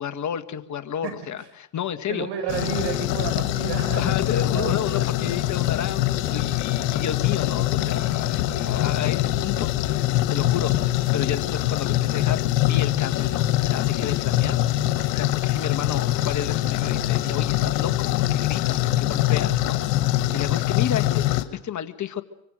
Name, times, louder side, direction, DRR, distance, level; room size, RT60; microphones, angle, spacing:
voice 1, 0.0-2.3 3.9-14.6 15.1-22.2, left 9 dB, 35° left, 8 dB, 1.9 m, -32 dB
voice 2, 1.0-1.5 2.1-5.1 20.3-20.4, right 8 dB, 55° right, 7 dB, 6.9 m, -32 dB
sound 1, 2.5-21.4, left 14 dB, 75° left, 2.1 m, -23 dB
25.0 x 24.5 x 6.5 m, 0.79 s
supercardioid pair, 95°, 50 cm